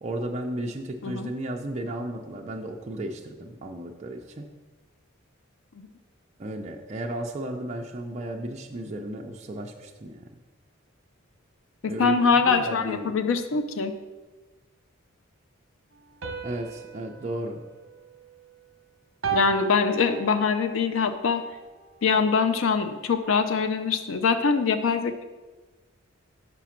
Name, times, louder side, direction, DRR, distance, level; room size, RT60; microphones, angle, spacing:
voice 1, 0.0-4.5 6.4-10.2 11.8-13.2 16.4-17.6, right 1 dB, 30° right, 0 dB, 0.5 m, -34 dB
voice 2, 11.8-13.9 19.3-21.4 22.0-25.2, left 5 dB, 70° left, 9 dB, 0.5 m, -23 dB
sound 1, 16.2-18.7 19.2-20.8, right 5 dB, 65° right, 0.8 m, -35 dB
6.0 x 5.0 x 5.8 m, 1.3 s
head